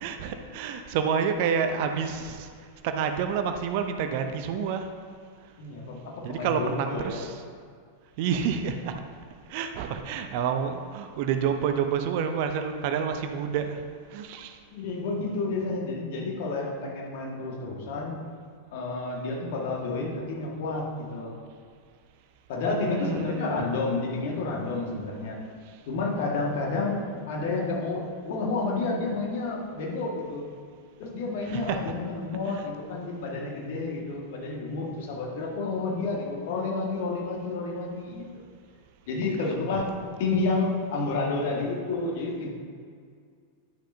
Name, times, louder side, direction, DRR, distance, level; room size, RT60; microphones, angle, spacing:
voice 1, 0.0-2.5 2.8-4.9 6.2-7.3 8.2-9.0 9.5-13.8 14.1-14.6 22.6-23.7 31.5-31.8, right 7 dB, 50° right, 7 dB, 0.6 m, -29 dB
voice 2, 5.6-7.2 14.7-18.2 18.7-21.3 22.5-25.4 25.9-30.5 31.0-38.4 39.1-39.9 40.2-42.5, left 3 dB, 50° left, -2 dB, 1.8 m, -30 dB
11.5 x 6.2 x 2.7 m, 2.1 s
figure-of-eight pair, 90°, 0 cm